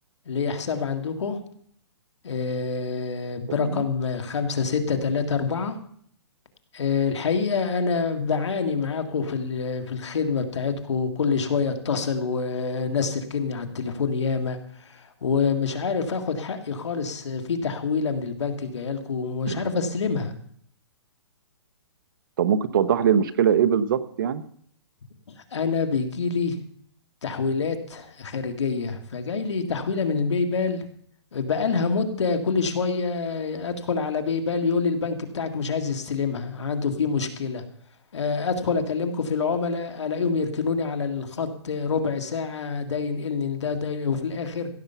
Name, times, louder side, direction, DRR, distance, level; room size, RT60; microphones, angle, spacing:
voice 1, 0.3-1.4 2.2-5.8 6.7-20.3 25.3-26.6 27.2-30.8 31.3-37.6 38.1-44.7, left 5 dB, 80° left, 6 dB, 2.0 m, -26 dB
voice 2, 22.4-24.4, right 8 dB, 50° right, 12 dB, 0.9 m, -22 dB
15.5 x 7.2 x 6.9 m, 0.63 s
hypercardioid pair, 160°, 15 cm